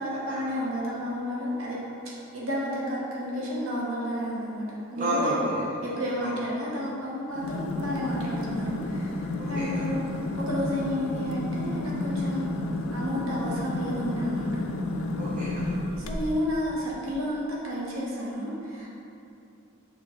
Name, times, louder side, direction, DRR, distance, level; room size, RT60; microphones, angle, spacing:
voice 1, 0.0-1.8 2.3-5.3 5.8-10.0 10.3-12.5 12.9-14.7 15.0-15.1 16.0-18.9, equal, 70° right, -5 dB, 0.8 m, -31 dB
voice 2, 5.0-5.7 6.2-6.4 9.4-9.9 15.2-15.8, right 1 dB, 40° right, -7 dB, 0.6 m, -31 dB
sound 1, 7.3-16.5, left 2 dB, 80° left, 0.4 m, -31 dB
6.0 x 2.9 x 2.9 m, 2.7 s
head